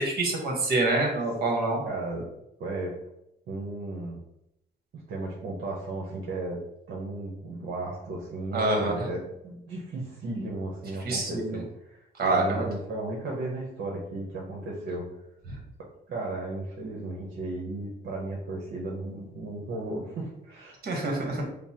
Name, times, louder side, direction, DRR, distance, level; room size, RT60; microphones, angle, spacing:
voice 1, 0.0-1.8 8.5-8.9 11.0-11.6 12.2-12.7 15.5-15.6 20.8-21.4, right 2 dB, 50° right, 1 dB, 1.3 m, -26 dB
voice 2, 1.9-2.3 2.6-2.9 3.5-4.2 4.9-6.6 6.9-15.1 16.1-20.8 21.2-21.4, right 2 dB, 65° right, -2 dB, 0.9 m, -35 dB
5.2 x 2.0 x 2.9 m, 0.82 s
cardioid pair, 90°, 20 cm